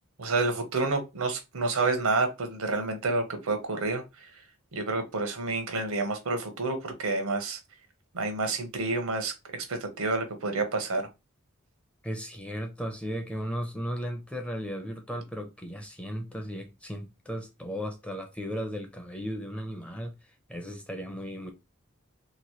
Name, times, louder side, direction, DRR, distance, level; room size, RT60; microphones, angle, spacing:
voice 1, 0.2-4.0 4.7-7.6 8.1-11.1, right 3 dB, 85° right, 0.8 m, -29 dB
voice 2, 12.0-21.5, equal, 5° left, 0.5 m, -36 dB
3.0 x 2.5 x 2.9 m
head